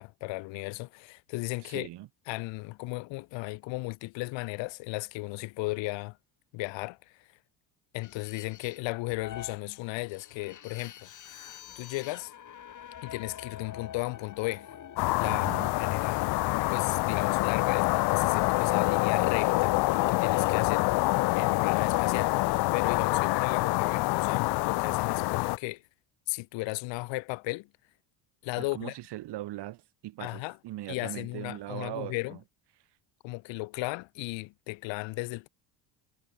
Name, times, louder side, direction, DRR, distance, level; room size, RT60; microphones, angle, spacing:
voice 1, 0.0-1.9 2.3-6.2 6.5-7.3 7.9-11.1 11.8-12.3 13.0-14.7 15.2-15.5 15.8-16.3 16.7-22.4 22.7-25.8 26.3-27.7 28.4-28.9 30.2-30.6 30.9-32.4 33.2-35.5, left 23 dB, 75° left, 2.2 m, -35 dB
voice 2, 1.6-2.1 15.2-15.7 28.6-32.4, right 15 dB, 60° right, 5.8 m, -40 dB
sound 1, 8.0-24.7, left 9 dB, 40° left, 7.4 m, -47 dB
sound 2, 15.0-25.6, left 21 dB, 60° left, 0.7 m, -26 dB
cardioid pair, 125°, 45 cm